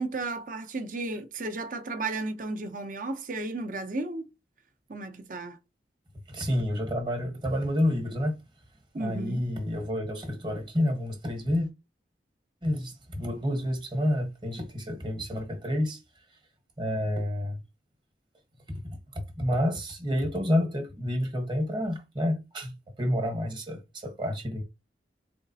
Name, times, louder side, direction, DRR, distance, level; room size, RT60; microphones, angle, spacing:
voice 1, 0.0-4.3 4.9-5.6 8.9-9.5, right 2 dB, 45° right, 0.7 m, -34 dB
voice 2, 6.3-8.4 8.9-11.7 12.6-16.0 16.8-17.6 18.7-24.6, left 1 dB, 25° right, 1.1 m, -29 dB
4.0 x 3.4 x 2.7 m
head